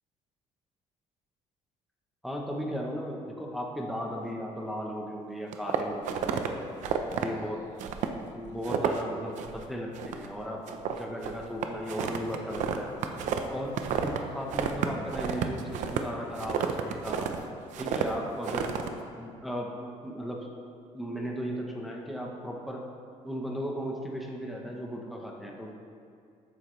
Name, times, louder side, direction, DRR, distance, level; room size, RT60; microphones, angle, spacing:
voice 1, 2.2-6.7 7.1-7.7 8.3-12.9 13.5-17.4 17.8-18.8 19.2-20.5 20.9-22.8 23.2-25.8, equal, ahead, -1 dB, 0.9 m, -36 dB
sound 1, 5.5-6.5 6.8-7.3 7.8-8.2 8.4-9.1 9.4-9.7 9.9-10.4 10.7-14.2 14.5-17.4 17.7-18.1 18.4-18.9, right 8 dB, 65° right, 0.8 m, -30 dB
13.0 x 9.3 x 3.2 m, 2.4 s
cardioid pair, 170°, 13 cm